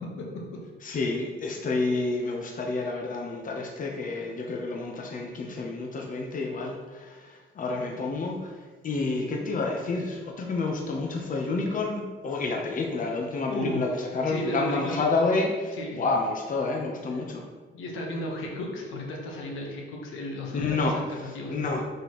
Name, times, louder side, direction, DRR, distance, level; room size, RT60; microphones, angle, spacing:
voice 1, 0.8-8.5 8.8-17.5 20.5-20.9 21.5-21.8, left 3 dB, 40° left, 0 dB, 0.9 m, -29 dB
voice 2, 13.5-13.8 14.2-15.0 15.7-16.0 17.1-17.2 17.7-21.6, left 1 dB, 85° left, -1 dB, 1.3 m, -34 dB
6.1 x 5.1 x 3.1 m, 1.4 s
cardioid pair, 90°, 20 cm